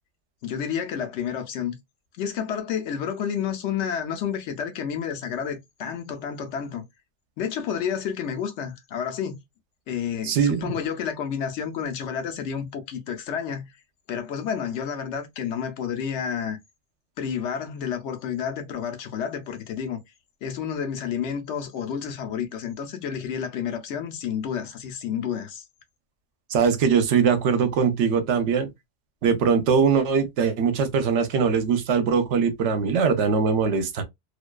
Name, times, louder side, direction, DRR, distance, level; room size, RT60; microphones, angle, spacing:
voice 1, 0.4-1.8 2.2-6.8 7.4-9.4 9.9-13.7 14.1-16.6 17.2-20.0 20.4-25.7, left 8 dB, 75° left, 0.9 m, -30 dB
voice 2, 10.2-10.7 26.5-28.7 29.2-34.0, right 6 dB, 75° right, 0.9 m, -21 dB
2.5 x 2.2 x 2.2 m
omnidirectional pair, 1.3 m